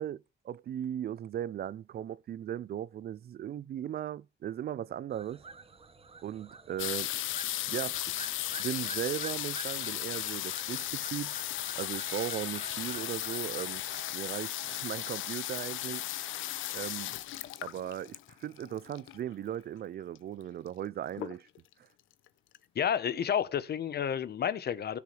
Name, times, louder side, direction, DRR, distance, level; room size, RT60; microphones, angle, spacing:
voice 1, 0.0-5.4 6.2-7.1 7.7-8.3 8.6-11.3 11.8-13.8 14.1-16.3 16.7-17.1 17.6-21.5, right 10 dB, 50° right, 0.4 m, -37 dB
sound 1, 5.1-14.0, right 4 dB, 30° right, 1.4 m, -49 dB
sound 2, 6.8-19.3 20.1-20.2 20.4-20.8 21.1-21.7 22.3-22.4 22.5-22.6, left 14 dB, 85° left, 0.8 m, -36 dB
Percussion, 12.1-16.7, right 7 dB, 75° right, 1.8 m, -53 dB
voice 2, 22.7-25.0, left 8 dB, 55° left, 1.0 m, -30 dB
18.5 x 6.7 x 3.3 m
cardioid pair, 90°, 20 cm